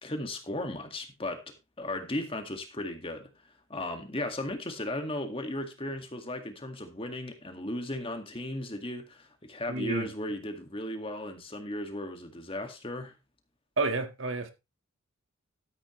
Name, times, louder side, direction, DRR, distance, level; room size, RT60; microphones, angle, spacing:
voice 1, 0.0-3.3 3.7-13.1, left 1 dB, 25° left, 2.1 m, -36 dB
voice 2, 9.7-10.1 13.8-14.5, right 3 dB, 65° right, 1.7 m, -30 dB
13.5 x 9.1 x 3.2 m
head